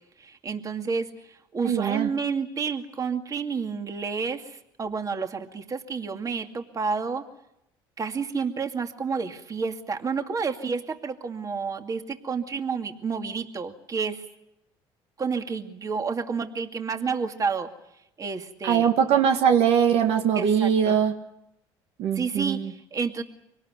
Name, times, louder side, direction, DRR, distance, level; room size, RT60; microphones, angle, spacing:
voice 1, 0.2-7.2 8.0-14.2 15.2-17.7 18.2-18.9 20.4-21.0 22.1-23.2, right 5 dB, 35° right, 6 dB, 2.4 m, -30 dB
voice 2, 1.6-2.1 18.6-21.1 22.0-22.7, right 8 dB, 70° right, 5 dB, 2.1 m, -21 dB
25.0 x 18.5 x 9.7 m, 0.83 s
supercardioid pair, 90°, 10 cm